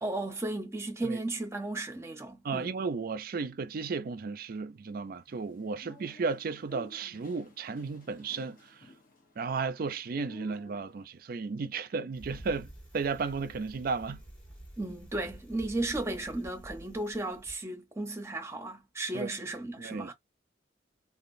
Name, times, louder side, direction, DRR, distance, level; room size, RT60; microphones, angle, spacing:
voice 1, 0.0-2.7 14.8-20.1, right 2 dB, 15° right, 0.7 m, -35 dB
voice 2, 2.4-8.6 9.4-12.7 12.9-14.2 19.1-19.3 19.8-20.1, right 4 dB, 50° right, 0.4 m, -34 dB
sound 1, 5.3-11.0, equal, 50° left, 1.0 m, -53 dB
Bicycle, 12.1-17.6, right 1 dB, 5° left, 1.1 m, -49 dB
2.9 x 2.3 x 2.5 m
head